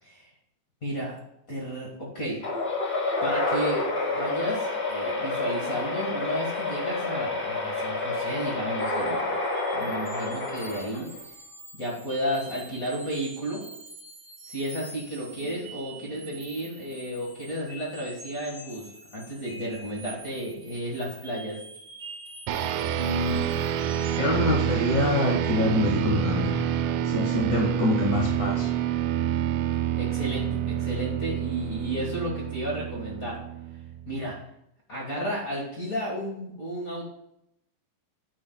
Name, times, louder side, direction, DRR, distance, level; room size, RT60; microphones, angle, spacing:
voice 1, 0.8-1.2 1.5-2.4 3.2-9.3 9.7-11.1 11.8-13.6 14.5-21.6 29.9-33.4 34.1-34.3 34.9-37.0, equal, 50° left, -3 dB, 1.0 m, -33 dB
sound 1, 2.4-11.2, left 2 dB, 30° left, 2.8 m, -29 dB
sound 2, 8.8-24.3, right 2 dB, 30° right, 1.5 m, -45 dB
sound 3, 22.5-34.2, right 10 dB, 80° right, 1.9 m, -28 dB
voice 2, 23.0-23.5 24.2-26.5 27.0-28.7, left 2 dB, 80° left, -1 dB, 0.9 m, -25 dB
9.2 x 8.7 x 2.3 m, 0.79 s
omnidirectional pair, 4.1 m